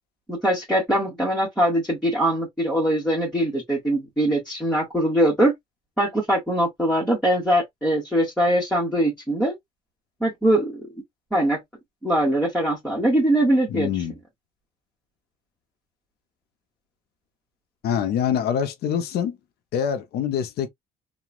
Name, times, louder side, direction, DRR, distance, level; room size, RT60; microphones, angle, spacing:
voice 1, 0.3-5.5 6.0-9.5 10.2-10.9 11.3-11.6 12.0-13.9, right 1 dB, 5° left, 1.2 m, -22 dB
voice 2, 13.7-14.1 17.8-19.4 19.7-20.7, left 8 dB, 70° left, 0.7 m, -25 dB
3.0 x 2.3 x 2.4 m
cardioid pair, 110°, 17 cm